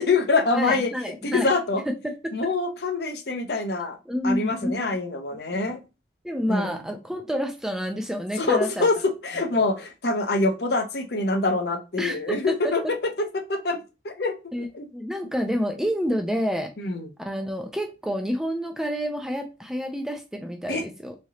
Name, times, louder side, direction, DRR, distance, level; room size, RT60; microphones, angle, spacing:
voice 1, 0.0-1.8 2.3-4.0 4.2-5.8 6.5-6.7 8.4-13.8 14.0-14.3 14.7-14.9 16.8-17.1 20.7-20.8, left 3 dB, 65° left, 5 dB, 0.6 m, -25 dB
voice 2, 0.5-1.5 1.9-2.5 4.1-5.0 5.5-5.7 6.2-8.9 9.5-9.7 12.0-12.7 14.5-14.7 14.9-16.7 17.2-21.2, equal, 5° right, 4 dB, 0.3 m, -29 dB
3.6 x 3.2 x 2.8 m, 0.29 s
head